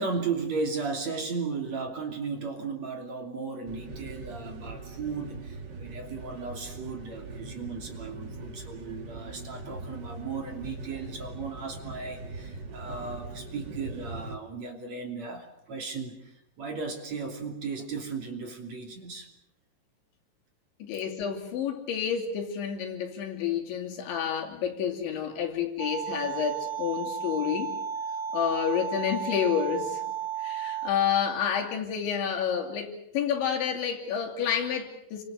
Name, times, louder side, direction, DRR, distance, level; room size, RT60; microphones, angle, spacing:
voice 1, 0.0-19.3, right 4 dB, 40° right, 3.7 m, -35 dB
sound 1, 3.6-14.4, right 2 dB, 80° right, 0.9 m, -41 dB
voice 2, 20.8-27.7 28.3-30.0 30.4-35.2, left 8 dB, 85° left, 5.2 m, -29 dB
sound 2, 25.8-30.9, right 7 dB, 65° right, 2.9 m, -34 dB
29.0 x 26.0 x 6.5 m
omnidirectional pair, 5.2 m